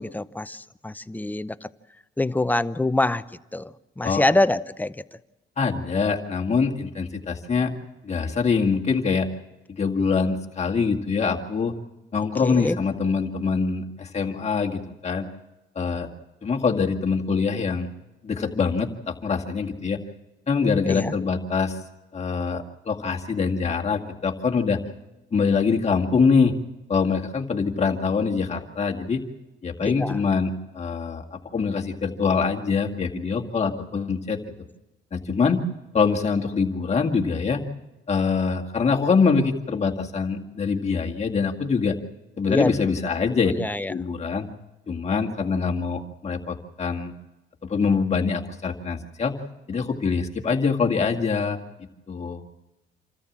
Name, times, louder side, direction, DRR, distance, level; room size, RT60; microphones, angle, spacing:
voice 1, 0.0-1.5 2.2-3.2 3.5-3.7 4.0-4.9 12.4-12.8 20.9-21.1 30.0-30.2 42.5-42.7 43.5-43.9, left 2 dB, 10° left, 0.6 m, -24 dB
voice 2, 5.6-7.7 8.0-9.3 9.8-11.7 12.1-15.3 15.8-16.1 16.4-17.9 18.2-20.0 20.5-21.8 22.1-24.8 25.3-26.5 26.9-29.2 29.6-34.4 35.1-35.6 35.9-37.6 38.1-42.0 42.4-43.5 43.9-44.5 44.9-47.1 47.7-49.3 49.7-51.6 52.1-52.4, left 5 dB, 35° left, 2.0 m, -24 dB
27.0 x 13.5 x 7.4 m
cardioid pair, 90°, 20 cm